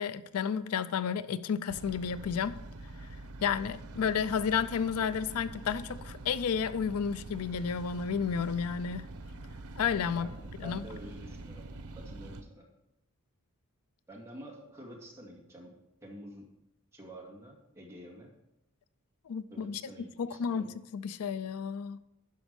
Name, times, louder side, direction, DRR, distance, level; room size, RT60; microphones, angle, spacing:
voice 1, 0.0-2.6 3.4-9.1 9.8-10.3 10.6-10.9 19.3-22.0, left 7 dB, 85° left, 0.4 m, -32 dB
sound 1, 1.7-12.4, right 2 dB, 85° right, 0.9 m, -45 dB
voice 2, 10.2-12.7 14.1-15.7 16.0-16.5 16.9-18.3 19.5-20.7, right 1 dB, 15° right, 2.2 m, -48 dB
12.0 x 5.2 x 5.2 m
head